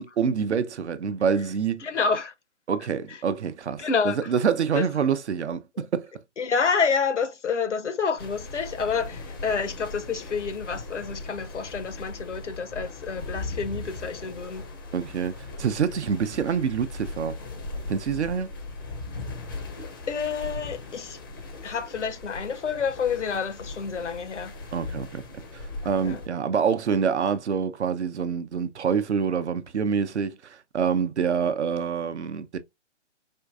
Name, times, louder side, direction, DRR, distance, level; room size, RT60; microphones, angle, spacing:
voice 1, 0.0-1.8 2.7-6.1 14.9-17.4 17.9-18.5 24.7-25.2 25.5-32.6, right 6 dB, 70° right, 0.6 m, -26 dB
voice 2, 1.8-2.3 3.8-4.2 4.7-4.8 6.4-14.6 20.1-21.2 21.6-24.5 26.0-26.2, left 5 dB, 80° left, 0.8 m, -28 dB
sound 1, 8.2-26.3, left 3 dB, 20° left, 0.5 m, -38 dB
4.4 x 2.7 x 2.3 m
figure-of-eight pair, 135°, 36 cm